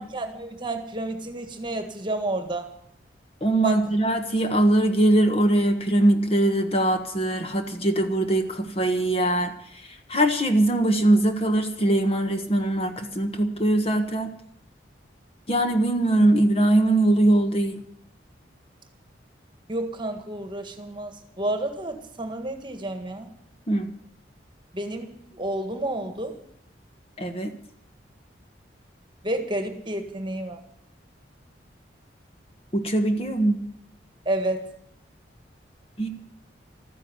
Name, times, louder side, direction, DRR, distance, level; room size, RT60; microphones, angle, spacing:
voice 1, 0.0-2.7 3.6-3.9 19.7-23.3 24.7-26.4 29.2-30.6 34.2-34.7, right 1 dB, 25° right, 7 dB, 1.7 m, -30 dB
voice 2, 3.4-9.5 10.1-14.3 15.5-17.8 23.7-23.9 27.2-27.5 32.7-33.6 36.0-36.1, right 1 dB, 30° left, 7 dB, 1.4 m, -21 dB
13.5 x 10.0 x 9.6 m, 0.70 s
head